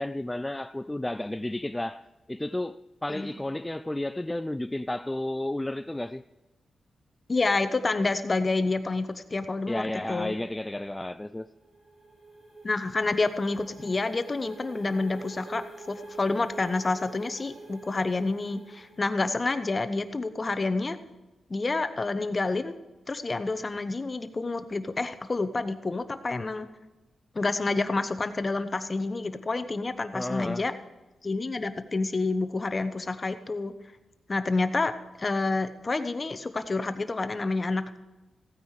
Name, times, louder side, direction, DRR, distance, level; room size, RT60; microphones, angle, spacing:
voice 1, 0.0-6.2 9.7-11.5 30.1-30.6, left 1 dB, 10° left, 0.3 m, -32 dB
voice 2, 7.3-10.3 12.6-21.0 21.5-22.8 23.1-26.7 27.3-30.7 31.2-33.7 34.3-38.0, left 3 dB, 35° left, 1.0 m, -28 dB
sound 1, 11.3-20.0, right 2 dB, 60° right, 3.8 m, -46 dB
15.5 x 9.4 x 4.9 m
cardioid pair, 90°, 0 cm